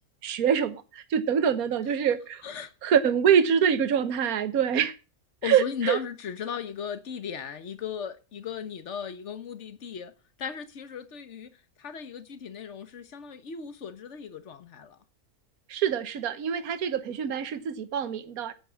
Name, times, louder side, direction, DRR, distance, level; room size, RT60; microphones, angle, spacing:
voice 1, 0.2-2.4 2.8-4.9 5.4-6.0 15.7-18.5, right 8 dB, 70° right, 1.5 m, -25 dB
voice 2, 5.4-10.1 10.4-11.5 11.8-15.0, left 7 dB, 50° left, 1.4 m, -36 dB
11.0 x 9.3 x 6.2 m
omnidirectional pair, 1.6 m